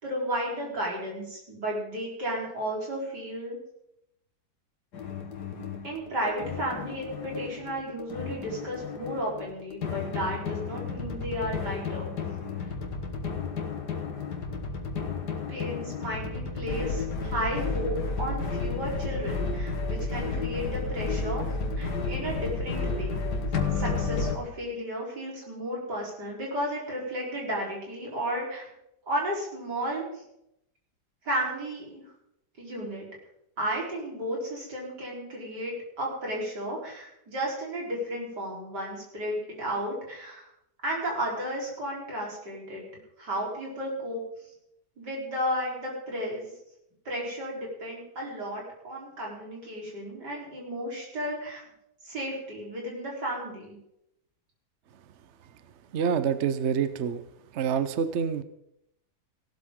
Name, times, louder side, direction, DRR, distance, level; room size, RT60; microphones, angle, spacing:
voice 1, 0.0-3.6 5.6-12.1 15.5-21.4 21.7-23.2 23.7-28.6 29.1-30.2 31.2-32.0 32.6-33.1 33.6-40.5 40.8-42.8 43.2-44.2 45.0-46.5 47.0-51.6 52.0-53.8, equal, 80° right, -3 dB, 4.7 m, -33 dB
sound 1, 4.9-24.4, left 4 dB, 75° left, 2.0 m, -32 dB
voice 2, 55.9-57.2 57.5-58.4, right 7 dB, 55° right, 12 dB, 0.9 m, -27 dB
17.0 x 12.5 x 3.7 m, 0.80 s
omnidirectional pair, 1.8 m